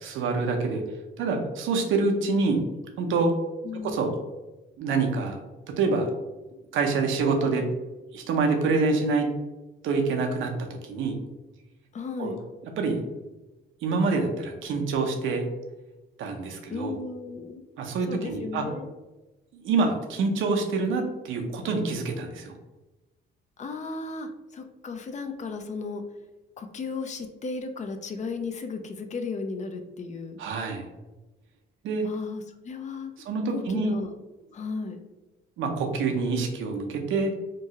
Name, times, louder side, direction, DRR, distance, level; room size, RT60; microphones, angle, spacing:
voice 1, 0.0-0.8 1.2-2.6 3.0-3.3 3.8-4.1 4.8-5.4 5.8-6.1 6.7-7.6 8.1-9.3 9.8-11.2 12.2-12.3 12.8-13.0 13.8-15.5 16.2-16.9 17.8-18.6 19.5-22.5 30.4-30.9 31.8-32.1 33.3-33.9 35.6-37.3, right 4 dB, 80° right, 3 dB, 0.6 m, -26 dB
voice 2, 3.6-4.0 11.9-12.4 16.7-17.6 18.0-18.9 23.6-26.0 26.6-30.4 32.0-34.1 34.5-35.0, left 4 dB, 35° left, 7 dB, 0.4 m, -35 dB
2.9 x 2.3 x 2.8 m, 1.1 s
cardioid pair, 90°, 20 cm